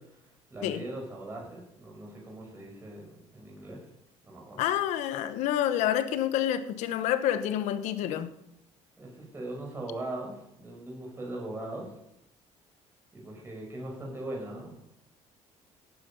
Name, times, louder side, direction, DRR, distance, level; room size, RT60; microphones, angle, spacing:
voice 1, 0.5-3.8 4.2-4.6 9.0-12.0 13.1-14.7, right 1 dB, 20° right, -2 dB, 5.7 m, -40 dB
voice 2, 4.6-8.3, left 11 dB, 80° left, 11 dB, 1.2 m, -28 dB
17.0 x 9.6 x 5.5 m, 0.83 s
cardioid pair, 140°, 12 cm